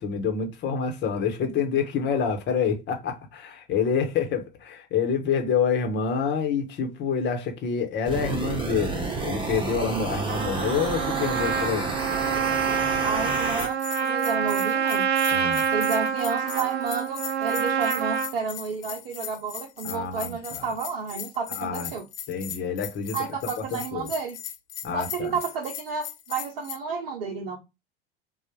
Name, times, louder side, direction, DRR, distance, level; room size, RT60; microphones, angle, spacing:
voice 1, 0.0-11.9 15.3-15.6 19.8-20.7 21.5-21.9 22.3-23.2 23.7-24.1 24.8-25.4, left 6 dB, 40° left, 1.2 m, -27 dB
sound 1, 8.0-13.7, right 3 dB, 15° right, 1.1 m, -30 dB
Trumpet, 10.3-18.3, right 7 dB, 35° right, 0.5 m, -26 dB
voice 2, 13.0-15.1 15.7-22.1 23.1-24.4 24.9-27.6, right 5 dB, 60° right, 0.9 m, -31 dB
Bell, 13.6-26.8, left 10 dB, 70° left, 0.6 m, -38 dB
3.9 x 2.4 x 4.4 m
figure-of-eight pair, 75°, 30 cm